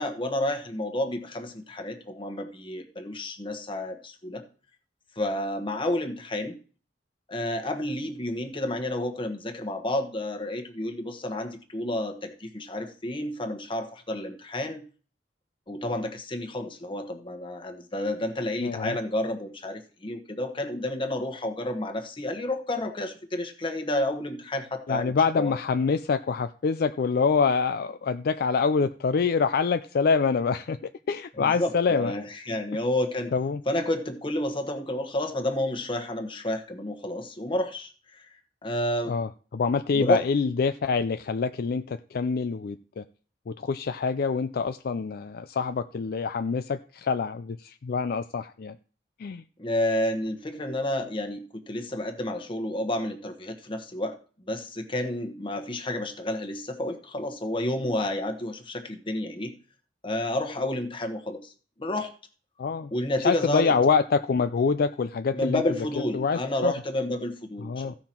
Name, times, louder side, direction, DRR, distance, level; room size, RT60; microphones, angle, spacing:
voice 1, 0.0-4.4 5.2-6.5 7.3-14.8 15.7-25.5 31.4-33.3 33.7-38.2 38.6-39.1 39.9-40.2 49.6-54.2 54.5-59.5 60.0-61.5 61.8-62.1 62.9-63.7 65.3-67.9, left 1 dB, 30° left, 5 dB, 1.2 m, -30 dB
voice 2, 18.6-19.0 24.9-32.1 33.3-33.6 39.1-43.0 43.5-48.8 49.2-49.4 62.6-62.9 63.2-65.6 66.1-66.7 67.6-67.9, left 5 dB, 55° left, 10 dB, 0.4 m, -26 dB
15.0 x 5.7 x 4.4 m, 0.40 s
head